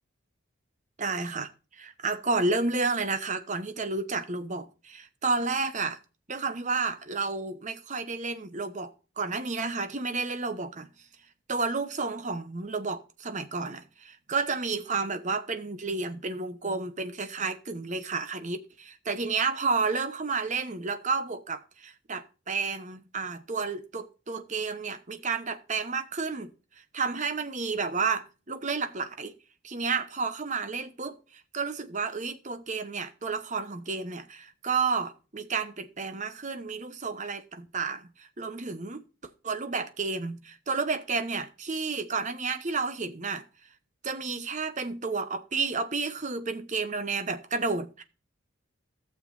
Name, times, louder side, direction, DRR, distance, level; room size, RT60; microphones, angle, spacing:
voice 1, 1.0-1.5 1.8-6.0 6.3-10.9 11.5-26.5 26.9-29.3 29.6-31.2 31.5-39.0 39.4-43.4 44.0-48.0, right 4 dB, 35° right, 0.9 m, -31 dB
15.5 x 6.9 x 2.6 m
head